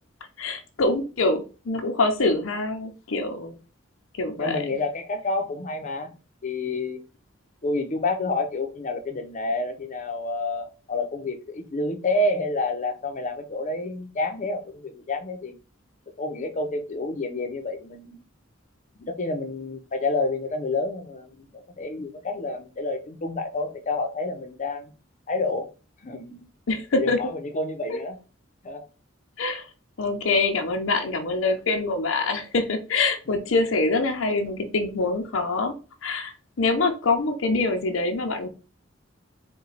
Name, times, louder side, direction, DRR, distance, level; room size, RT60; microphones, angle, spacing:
voice 1, 0.4-3.6 4.2-4.8 26.7-27.2 27.9-28.0 29.4-29.7 30.0-35.7 36.0-38.5, left 3 dB, 90° left, 5 dB, 0.7 m, -25 dB
voice 2, 4.4-6.1 6.4-7.0 7.6-15.5 16.2-18.2 19.0-24.9 25.3-25.7 26.0-26.4 26.9-28.2 28.6-28.9, left 2 dB, 40° left, 7 dB, 0.6 m, -29 dB
4.3 x 2.3 x 3.9 m, 0.34 s
head